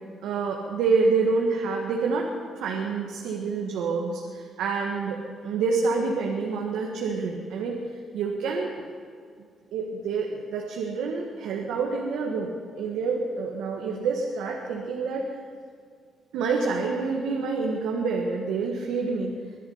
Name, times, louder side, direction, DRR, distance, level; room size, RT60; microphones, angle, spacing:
voice 1, 0.2-2.3 2.6-7.8 8.1-8.8 9.7-12.5 12.8-15.2 16.3-19.3, right 4 dB, 85° right, 0 dB, 1.7 m, -27 dB
22.5 x 11.0 x 5.7 m, 2.1 s
cardioid pair, 90°, 0 cm